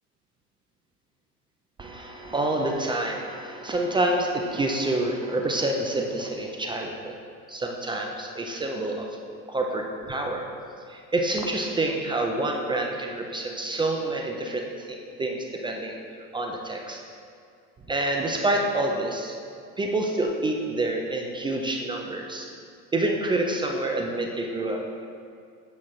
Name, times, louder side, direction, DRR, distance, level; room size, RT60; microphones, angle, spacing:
voice 1, 1.8-7.1 7.5-9.1 9.5-10.5 10.9-15.9 16.3-17.0 17.9-19.4 19.8-22.5 22.9-25.1, right 2 dB, 10° right, 1 dB, 0.3 m, -27 dB
8.6 x 5.8 x 3.8 m, 2.3 s
hypercardioid pair, 95°, 49 cm